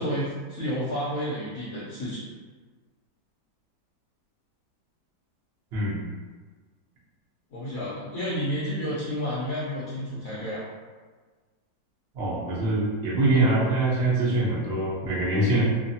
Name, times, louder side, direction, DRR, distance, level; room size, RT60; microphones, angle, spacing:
voice 1, 0.0-2.2 7.5-10.6, equal, 65° left, -9 dB, 0.9 m, -30 dB
voice 2, 12.1-15.6, right 2 dB, 80° right, -5 dB, 0.5 m, -24 dB
3.3 x 2.0 x 2.7 m, 1.4 s
omnidirectional pair, 2.1 m